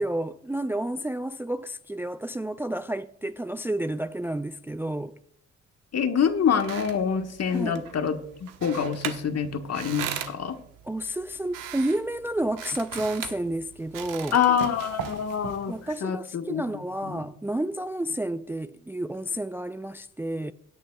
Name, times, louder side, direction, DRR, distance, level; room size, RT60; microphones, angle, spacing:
voice 1, 0.0-5.1 7.5-7.9 10.8-14.4 15.7-20.5, right 1 dB, 5° right, 0.5 m, -30 dB
voice 2, 5.9-8.2 8.6-10.5 14.3-15.7 16.0-16.6 17.0-17.2, left 7 dB, 50° left, 1.5 m, -26 dB
sound 1, 6.3-16.0, right 9 dB, 75° right, 1.2 m, -39 dB
17.0 x 9.2 x 2.3 m
supercardioid pair, 55°, 32 cm